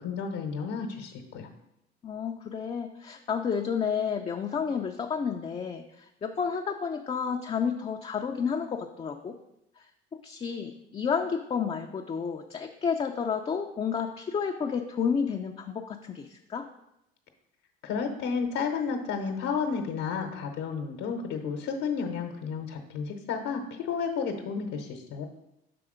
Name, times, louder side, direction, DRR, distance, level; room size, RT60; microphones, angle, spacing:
voice 1, 0.0-1.5 17.8-25.3, left 6 dB, 65° left, 3 dB, 0.9 m, -32 dB
voice 2, 2.0-9.3 9.8-9.9 10.2-16.7, left 6 dB, 20° left, 3 dB, 0.5 m, -31 dB
6.8 x 3.5 x 5.0 m, 0.84 s
hypercardioid pair, 75°, 29 cm